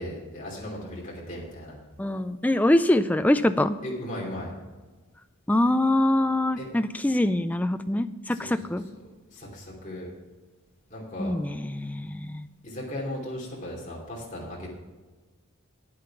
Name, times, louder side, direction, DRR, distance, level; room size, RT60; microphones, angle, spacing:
voice 1, 0.0-1.7 3.8-4.5 6.6-6.7 8.3-10.1 10.9-11.3 12.6-14.7, left 1 dB, 35° left, -2 dB, 2.8 m, -37 dB
voice 2, 2.0-3.7 5.5-8.8 11.2-12.5, left 1 dB, 5° left, 10 dB, 0.3 m, -24 dB
9.4 x 8.7 x 5.8 m, 1.3 s
head